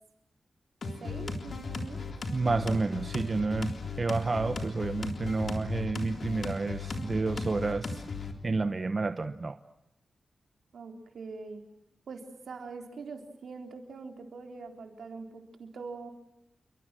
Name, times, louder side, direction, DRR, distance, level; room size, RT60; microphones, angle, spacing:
sound 1, 0.8-8.3, left 3 dB, 55° left, 3.6 m, -36 dB
voice 1, 1.0-2.1 10.7-11.7 12.1-16.1, right 4 dB, 80° right, 4 dB, 3.8 m, -43 dB
voice 2, 2.3-8.0 8.4-9.6, right 3 dB, 35° right, 10 dB, 1.0 m, -30 dB
28.5 x 23.5 x 7.7 m, 0.83 s
wide cardioid pair, 105°, 0 cm